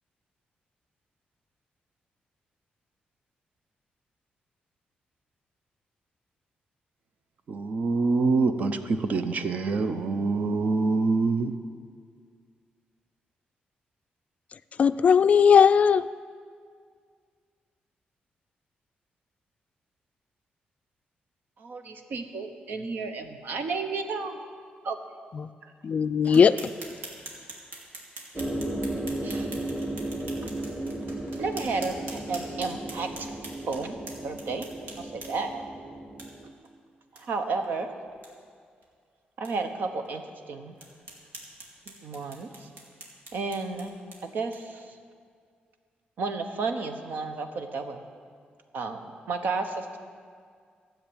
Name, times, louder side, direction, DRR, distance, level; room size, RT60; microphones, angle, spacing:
voice 1, 7.5-11.5, right 3 dB, 50° right, 10 dB, 0.8 m, -25 dB
voice 2, 14.8-16.1 25.3-25.5 25.8-26.7, left 7 dB, 45° left, 12 dB, 0.3 m, -19 dB
voice 3, 21.6-24.4 24.8-25.0 26.2-26.4 29.2-29.6 30.4-30.5 31.4-33.3 33.7-34.7 35.0-35.6 37.1-38.0 39.4-40.7 41.9-42.7 43.3-43.9 44.2-44.9 46.2-48.0 48.7-49.0 49.3-50.0, right 4 dB, 70° right, 7 dB, 1.1 m, -32 dB
sound 1, 26.2-35.6 36.2-36.3 36.6-36.7 37.1-37.2 37.6-37.7 38.1-38.3 38.8-38.9 39.4-39.5 40.0-40.1 40.8-44.8, right 2 dB, 85° right, 2.2 m, -45 dB
sound 2, 28.4-36.5, right 1 dB, 5° right, 1.1 m, -35 dB
13.5 x 7.4 x 9.0 m, 2.1 s
cardioid pair, 125°, 3 cm